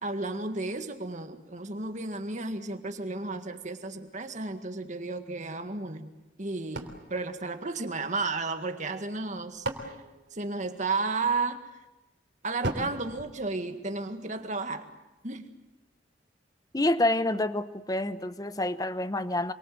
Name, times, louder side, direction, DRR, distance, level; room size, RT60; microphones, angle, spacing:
voice 1, 0.0-6.1 6.4-10.0 10.3-11.6 12.4-14.8 15.2-15.5, right 3 dB, 40° right, 7 dB, 1.9 m, -33 dB
sound 1, 6.7-8.3 9.1-11.1 12.6-14.2, right 1 dB, 60° right, 3.3 m, -39 dB
voice 2, 16.7-19.5, left 1 dB, 20° left, 13 dB, 0.9 m, -28 dB
26.5 x 24.0 x 7.9 m, 0.97 s
head